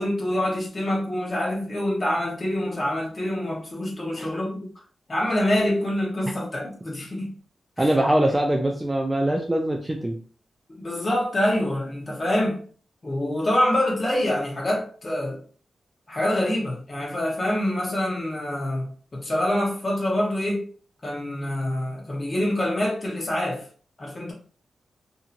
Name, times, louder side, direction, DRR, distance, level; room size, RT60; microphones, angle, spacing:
voice 1, 0.0-4.7 5.1-7.3 7.8-8.0 10.8-12.6 13.0-15.4 16.1-20.7 21.0-23.6 24.0-24.3, left 1 dB, 30° left, 0.9 m, -26 dB
voice 2, 7.8-10.2, right 1 dB, 10° right, 0.3 m, -23 dB
2.8 x 2.7 x 2.5 m
wide cardioid pair, 130°, 0 cm